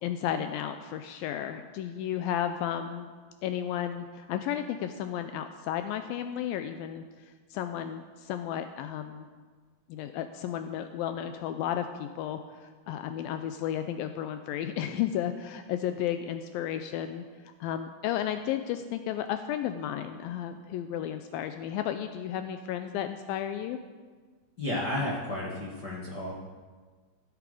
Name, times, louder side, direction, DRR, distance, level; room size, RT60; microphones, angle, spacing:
voice 1, 0.0-3.1 3.4-7.0 7.5-9.3 9.9-17.3 17.6-23.8, left 10 dB, 80° left, 8 dB, 2.3 m, -33 dB
voice 2, 24.6-26.3, left 1 dB, 50° left, -6 dB, 1.2 m, -32 dB
16.0 x 8.5 x 4.9 m, 1.5 s
omnidirectional pair, 4.3 m